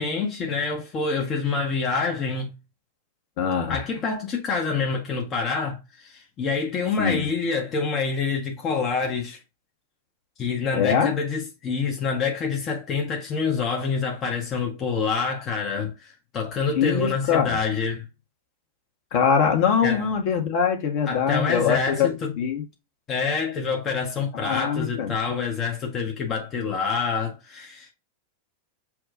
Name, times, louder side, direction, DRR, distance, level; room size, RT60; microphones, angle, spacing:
voice 1, 0.0-2.5 3.7-9.4 10.4-18.0 19.8-20.0 21.1-22.4 23.1-27.9, left 5 dB, 30° left, 0.9 m, -27 dB
voice 2, 3.4-3.8 7.0-7.2 10.7-11.1 16.7-17.6 19.1-22.6 24.3-25.1, left 7 dB, 50° left, 1.2 m, -23 dB
5.9 x 2.3 x 3.7 m
figure-of-eight pair, 90°, 0 cm